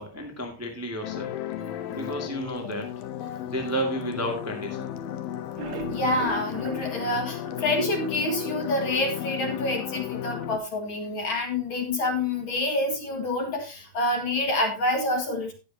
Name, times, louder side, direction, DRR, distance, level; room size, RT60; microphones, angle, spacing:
voice 1, 0.0-1.3 1.9-2.9 3.5-4.9, right 1 dB, 10° right, 1 dB, 1.0 m, -32 dB
sound 1, 1.0-10.6, left 11 dB, 85° left, 2.7 m, -34 dB
sound 2, 5.4-8.6 9.0-9.1 9.4-9.5 9.9-10.0, right 3 dB, 55° right, 1.4 m, -38 dB
voice 2, 5.9-15.5, left 2 dB, 40° left, 2 dB, 2.4 m, -27 dB
19.0 x 6.4 x 2.8 m, 0.31 s
omnidirectional pair, 4.0 m